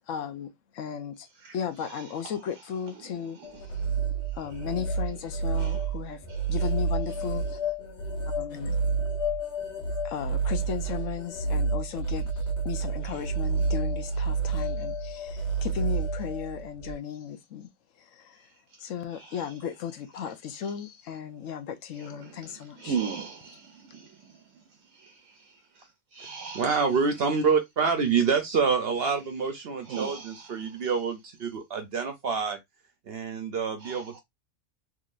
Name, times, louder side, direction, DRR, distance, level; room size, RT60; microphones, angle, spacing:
voice 1, 0.1-1.3 1.5-3.4 4.3-7.7 8.4-8.8 10.0-12.3 12.6-17.7 18.0-18.4 18.8-22.9, left 8 dB, 85° left, 1.1 m, -36 dB
voice 2, 1.2-4.8 5.1-5.2 5.5-5.9 6.3-7.5 10.6-10.8 13.0-13.7 14.1-14.9 15.4-15.7 18.3-19.7 20.4-20.8 21.9-27.1 28.9-29.3 29.8-31.0 31.5-31.6 33.8-34.2, right 6 dB, 85° right, 1.0 m, -42 dB
sound 1, 3.4-16.9, right 3 dB, 65° left, 1.4 m, -29 dB
voice 3, 26.6-32.6 33.1-34.2, right 5 dB, 60° right, 0.8 m, -27 dB
3.7 x 2.9 x 2.4 m
omnidirectional pair, 1.3 m